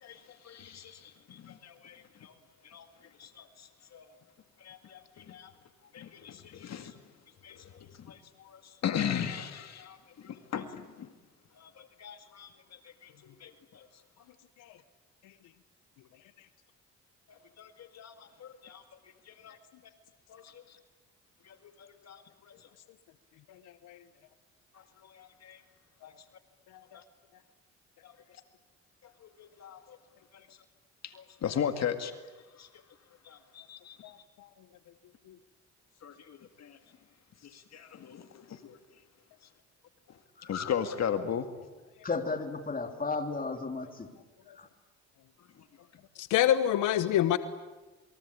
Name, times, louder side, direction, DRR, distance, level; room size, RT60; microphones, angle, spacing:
voice 1, 0.0-2.3 2.6-2.9 3.2-4.1 4.6-5.5 5.9-7.0 7.4-11.1 11.6-13.9 17.3-18.8 19.3-19.6 20.3-20.8 21.5-22.7 24.7-25.6 26.0-26.1 26.9-27.0 28.0-28.1 29.0-30.0 30.3-30.5 31.0-32.1 32.5-32.7 33.2-34.0 36.0-36.8 37.4-38.8 40.4-41.5, left 8 dB, 60° left, 8 dB, 2.0 m, -38 dB
voice 2, 42.0-44.1 44.5-44.7, left 4 dB, 30° left, 5 dB, 3.3 m, -34 dB
voice 3, 46.2-47.4, left 11 dB, 90° left, 12 dB, 1.1 m, -25 dB
28.0 x 23.0 x 8.6 m, 1.2 s
cardioid pair, 90°, 30 cm